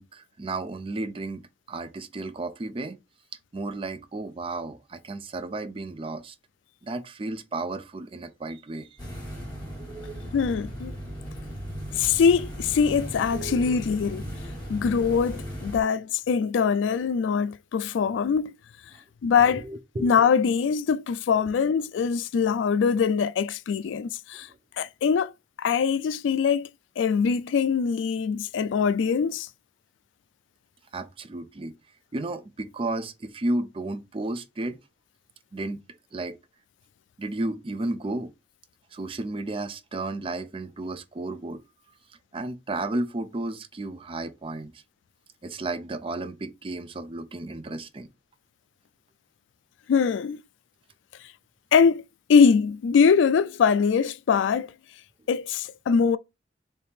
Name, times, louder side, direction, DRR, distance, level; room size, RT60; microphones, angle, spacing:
voice 1, 0.0-1.4 1.7-3.0 3.5-6.4 6.8-9.0 9.8-10.2 13.3-13.7 18.9-19.0 19.5-20.1 30.9-31.7 32.1-34.8 35.5-35.8 36.1-36.4 37.2-38.3 38.9-41.6 42.3-44.8 45.4-48.1, right 2 dB, 30° right, 0.4 m, -33 dB
sound 1, 9.0-15.8, equal, 25° left, 1.8 m, -37 dB
voice 2, 10.3-10.9 12.0-14.3 14.7-18.5 19.2-19.7 20.0-24.5 24.8-25.3 25.6-26.7 27.0-29.5 49.9-50.4 51.7-52.0 52.3-54.7 55.3-56.2, left 6 dB, 85° left, 0.3 m, -22 dB
4.3 x 2.7 x 3.4 m
head